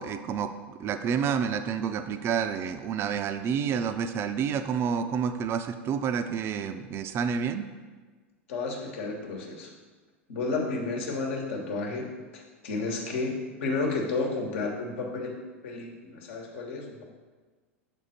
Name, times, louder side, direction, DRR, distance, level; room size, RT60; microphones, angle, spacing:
voice 1, 0.0-7.7, right 7 dB, 35° right, 9 dB, 0.4 m, -29 dB
voice 2, 8.5-9.7 10.3-12.1 12.3-15.4 15.6-17.0, left 3 dB, 65° left, 1 dB, 1.2 m, -32 dB
6.5 x 3.6 x 4.2 m, 1.4 s
hypercardioid pair, 90°, 7 cm